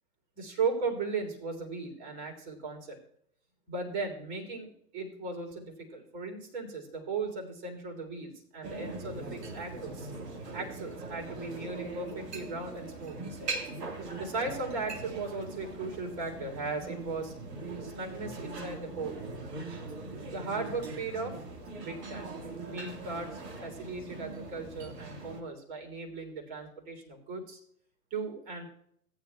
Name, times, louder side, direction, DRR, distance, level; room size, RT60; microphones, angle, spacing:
voice 1, 0.4-3.0 3.7-10.1 10.5-13.5 14.1-17.3 17.8-19.2 20.3-21.4 21.8-22.3 22.6-27.6 28.1-28.7, right 4 dB, 40° right, 2 dB, 3.4 m, -37 dB
sound 1, 8.6-25.4, right 3 dB, 75° right, 2.2 m, -41 dB
18.0 x 9.9 x 2.3 m, 0.66 s
hypercardioid pair, 125°, 48 cm